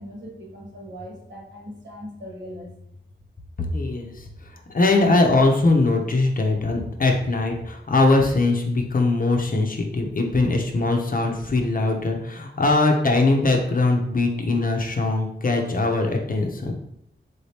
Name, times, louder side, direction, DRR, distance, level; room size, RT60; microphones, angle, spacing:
voice 1, 0.0-2.7, equal, 70° right, -2 dB, 1.3 m, -39 dB
voice 2, 3.7-4.3 4.7-16.7, left 2 dB, 45° left, 2 dB, 0.7 m, -21 dB
3.7 x 2.8 x 3.3 m, 0.77 s
wide cardioid pair, 70°, 20 cm